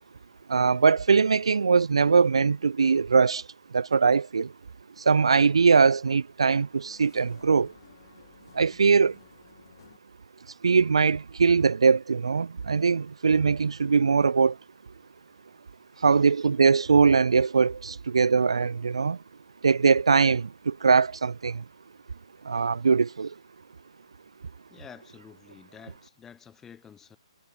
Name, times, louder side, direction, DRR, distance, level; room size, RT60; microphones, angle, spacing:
voice 1, 0.5-3.4 3.7-4.5 5.0-7.7 8.5-9.2 10.6-14.6 16.0-19.2 19.6-21.6 22.4-23.3, right 5 dB, 65° right, 0.6 m, -21 dB
sound 1, 6.3-10.0, left 9 dB, 45° left, 3.8 m, -56 dB
voice 2, 15.9-16.2 24.7-27.2, left 7 dB, 10° left, 1.9 m, -50 dB
figure-of-eight pair, 130°, 3 cm